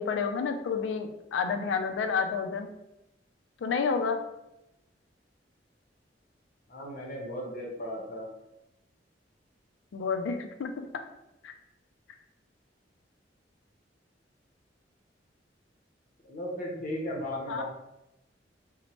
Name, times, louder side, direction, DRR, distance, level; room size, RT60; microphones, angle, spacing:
voice 1, 0.0-2.7 3.6-4.2 9.9-10.9 11.4-11.5 17.5-17.6, left 5 dB, 85° left, 6 dB, 0.3 m, -30 dB
voice 2, 6.7-8.3 16.2-17.6, left 1 dB, 50° left, -1 dB, 0.7 m, -36 dB
2.9 x 2.1 x 2.8 m, 0.89 s
head